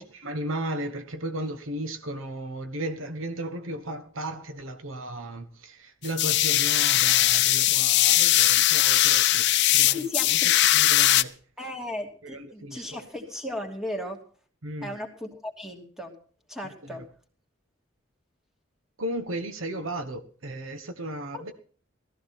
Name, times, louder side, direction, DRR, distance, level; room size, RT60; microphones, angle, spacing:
voice 1, 0.0-10.4 10.7-11.3 12.2-13.0 14.6-15.0 16.6-17.0 19.0-21.5, right 1 dB, 75° right, 1.3 m, -35 dB
sound 1, 6.0-11.2, left 14 dB, 60° left, 0.6 m, -20 dB
voice 2, 9.9-10.6 11.6-14.2 14.8-16.1 16.5-17.0 21.3-21.6, left 1 dB, ahead, 2.8 m, -36 dB
17.5 x 14.0 x 4.3 m
head